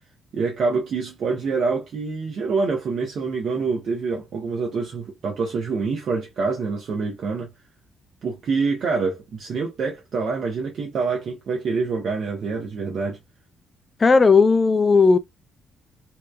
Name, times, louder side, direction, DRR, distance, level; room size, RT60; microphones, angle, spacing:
voice 1, 0.3-7.5 8.2-13.2, right 4 dB, 60° right, 0.7 m, -26 dB
voice 2, 14.0-15.2, left 4 dB, 35° left, 0.3 m, -15 dB
2.8 x 2.2 x 2.2 m
hypercardioid pair, 50°, 0 cm